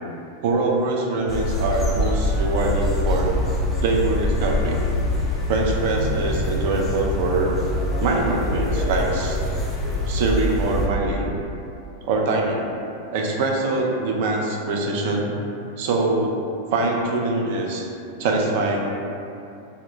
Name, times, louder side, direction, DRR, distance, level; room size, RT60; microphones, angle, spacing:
voice 1, 0.4-3.3 3.8-4.8 5.5-7.6 8.0-9.4 10.1-11.3 12.0-12.7 13.1-15.3 15.8-16.4 16.7-17.9 18.2-18.8, right 3 dB, 50° right, 0 dB, 0.4 m, -23 dB
sound 1, 1.3-10.9, left 1 dB, 15° left, 0.5 m, -24 dB
2.1 x 2.1 x 3.7 m, 2.7 s
figure-of-eight pair, 90°, 0 cm